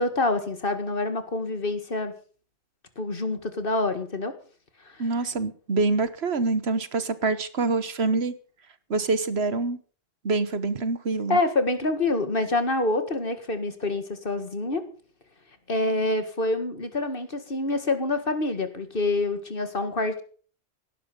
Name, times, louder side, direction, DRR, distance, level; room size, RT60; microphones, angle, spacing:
voice 1, 0.0-2.1 3.0-4.3 11.3-14.8 15.7-20.2, left 2 dB, 55° left, 10 dB, 2.1 m, -26 dB
voice 2, 5.0-8.3 8.9-9.8 10.2-11.4, right 3 dB, 70° right, 14 dB, 1.5 m, -25 dB
17.0 x 12.0 x 5.4 m, 0.43 s
omnidirectional pair, 1.1 m